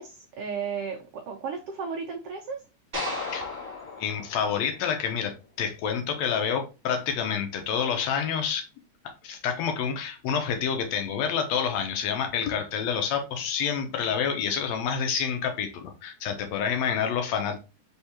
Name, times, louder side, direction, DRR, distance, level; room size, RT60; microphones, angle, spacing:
voice 1, 0.0-2.6, right 5 dB, 90° right, 1.3 m, -34 dB
sound 1, 2.9-5.3, left 2 dB, 25° right, 1.0 m, -35 dB
voice 2, 4.0-5.3 5.6-8.6 9.2-17.6, left 7 dB, 75° left, 1.7 m, -28 dB
4.4 x 3.4 x 2.8 m
omnidirectional pair, 3.4 m